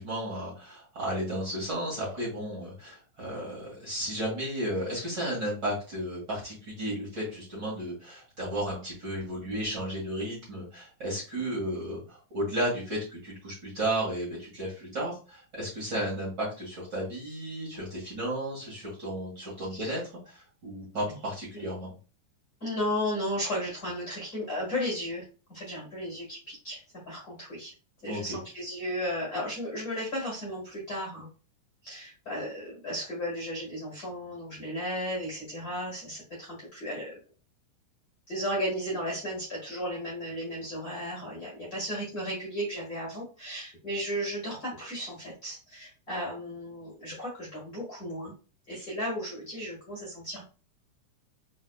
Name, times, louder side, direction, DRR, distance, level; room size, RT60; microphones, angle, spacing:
voice 1, 0.0-20.0 20.3-21.9 28.0-28.4, right 1 dB, 40° right, -6 dB, 2.0 m, -33 dB
voice 2, 22.6-25.2 25.5-27.7 28.0-31.3 31.8-37.1 38.3-48.3 48.7-50.4, equal, 35° left, -5 dB, 1.6 m, -34 dB
4.7 x 4.2 x 2.3 m, 0.36 s
omnidirectional pair, 3.8 m